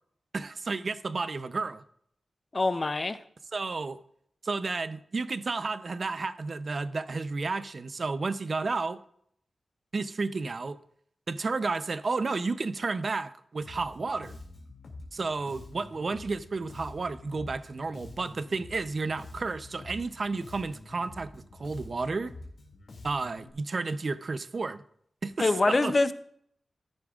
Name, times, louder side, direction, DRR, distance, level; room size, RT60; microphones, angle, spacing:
voice 1, 0.3-1.8 3.5-4.0 4.4-9.0 9.9-10.8 11.3-14.4 15.1-22.3 23.0-24.8 25.2-25.9, right 3 dB, 55° right, 0.6 m, -32 dB
voice 2, 2.5-3.2 25.4-26.1, left 3 dB, 40° left, 0.7 m, -24 dB
Bass guitar, 13.6-23.5, left 2 dB, 80° left, 2.4 m, -47 dB
14.0 x 11.0 x 2.5 m
wide cardioid pair, 80°, 0 cm